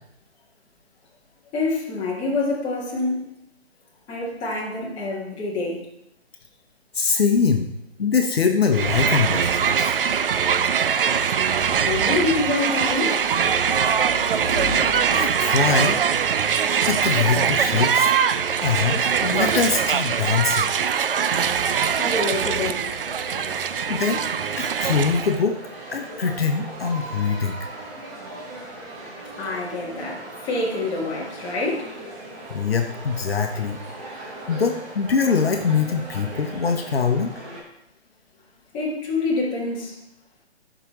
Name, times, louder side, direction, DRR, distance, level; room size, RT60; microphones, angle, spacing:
voice 1, 1.5-3.3 4.1-5.9 11.7-13.2 21.9-22.9 29.3-31.9 38.7-40.0, left 2 dB, 15° left, -5 dB, 1.4 m, -26 dB
voice 2, 6.9-7.7 8.0-10.0 15.1-16.0 16.9-18.1 18.6-20.7 23.9-24.2 24.6-25.6 25.9-27.7 32.5-33.8 34.5-37.3, left 5 dB, 60° left, 4 dB, 1.0 m, -23 dB
Crowd, 8.7-25.4, right 7 dB, 55° right, 0.5 m, -22 dB
sound 1, 10.4-19.0, equal, 30° right, 1.9 m, -38 dB
sound 2, 22.1-37.6, right 2 dB, 10° right, 0.7 m, -38 dB
11.5 x 5.0 x 3.0 m, 0.82 s
figure-of-eight pair, 140°, 33 cm